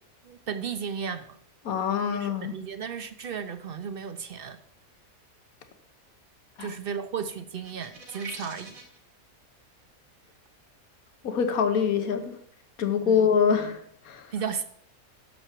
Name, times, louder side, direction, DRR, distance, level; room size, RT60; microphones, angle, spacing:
voice 1, 0.2-1.4 2.1-4.6 6.6-8.8 13.0-13.3 14.3-14.6, right 7 dB, 55° right, 10 dB, 0.7 m, -34 dB
voice 2, 1.6-2.6 6.6-6.7 11.2-12.4 12.8-14.3, left 7 dB, 85° left, 8 dB, 1.5 m, -25 dB
sound 1, 7.6-9.0, right 3 dB, 80° right, 2.4 m, -43 dB
10.5 x 6.8 x 4.5 m, 0.68 s
omnidirectional pair, 1.5 m